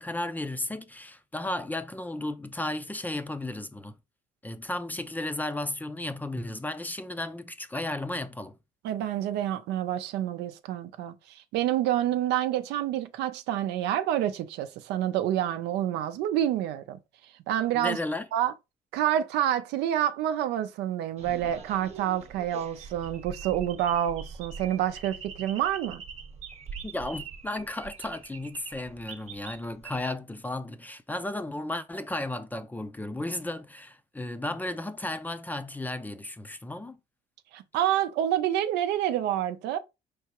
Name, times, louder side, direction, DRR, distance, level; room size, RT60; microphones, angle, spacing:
voice 1, 0.0-4.0 4.4-8.6 17.7-18.3 26.8-37.0, left 1 dB, 10° left, 0.4 m, -34 dB
voice 2, 8.8-17.0 17.5-18.0 18.3-18.5 18.9-26.0 37.5-39.8, right 11 dB, 85° right, 0.5 m, -28 dB
sound 1, 21.2-30.0, right 5 dB, 40° right, 0.9 m, -43 dB
4.7 x 3.4 x 2.9 m
cardioid pair, 110°, 17 cm